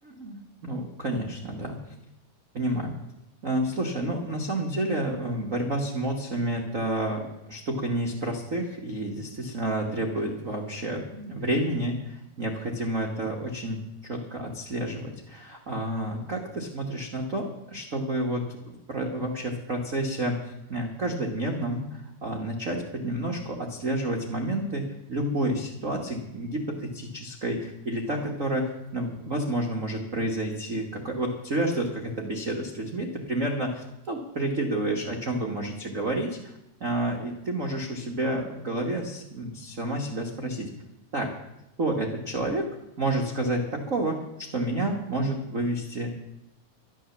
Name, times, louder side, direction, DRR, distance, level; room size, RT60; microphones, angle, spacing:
voice 1, 0.0-1.8 2.5-2.9 3.4-20.4 20.7-40.7 41.1-41.3 41.8-42.7 43.0-46.1, right 1 dB, 85° right, 1 dB, 0.7 m, -30 dB
12.5 x 10.0 x 7.2 m, 0.88 s
omnidirectional pair, 3.9 m